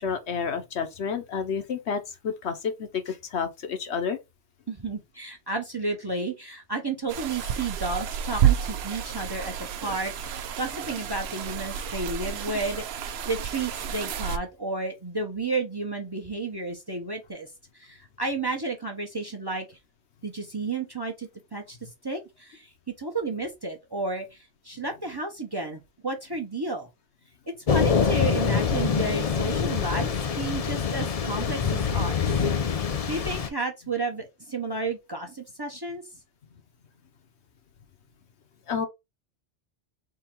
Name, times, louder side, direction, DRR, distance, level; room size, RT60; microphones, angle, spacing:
voice 1, 0.0-4.2 38.7-38.9, left 6 dB, 70° left, 1.1 m, -30 dB
voice 2, 4.7-9.5 9.8-17.5 17.7-19.8 20.2-22.7 23.0-26.9 27.7-32.4 33.1-36.0, right 3 dB, 25° right, 0.8 m, -32 dB
sound 1, 7.1-14.4, right 9 dB, 65° right, 0.8 m, -30 dB
Thunder / Rain, 27.7-33.5, left 6 dB, 45° left, 0.5 m, -25 dB
3.8 x 2.9 x 4.4 m
omnidirectional pair, 1.2 m